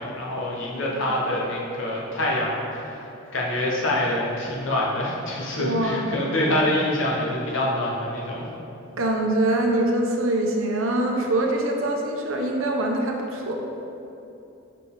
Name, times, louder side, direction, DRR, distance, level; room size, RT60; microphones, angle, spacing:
voice 1, 0.0-3.0 3.3-8.4, left 1 dB, 65° left, -4 dB, 1.0 m, -25 dB
voice 2, 5.6-6.0 9.0-13.6, right 1 dB, 80° right, 1 dB, 0.7 m, -24 dB
6.4 x 4.1 x 3.8 m, 2.8 s
head